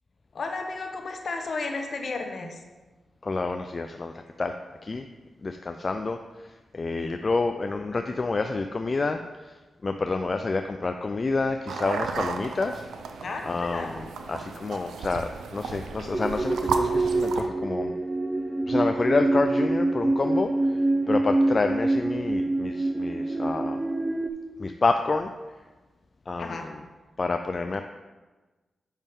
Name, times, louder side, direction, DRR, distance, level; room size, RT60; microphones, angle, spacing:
voice 1, 0.3-2.6 13.2-14.0 26.4-26.7, left 3 dB, 60° left, 4 dB, 1.0 m, -33 dB
voice 2, 3.2-4.1 4.4-4.5 4.8-5.0 5.4-6.2 6.7-9.2 9.8-12.9 13.4-14.0 14.3-17.9 18.7-20.5 21.1-23.8 24.6-25.3 26.3-26.5 27.2-27.8, left 3 dB, 45° left, 6 dB, 0.4 m, -28 dB
sound 1, 11.7-17.5, right 5 dB, 85° right, 0.4 m, -34 dB
sound 2, 16.1-24.3, right 2 dB, 30° right, 0.4 m, -26 dB
7.2 x 5.3 x 3.6 m, 1.2 s
cardioid pair, 55°, 0 cm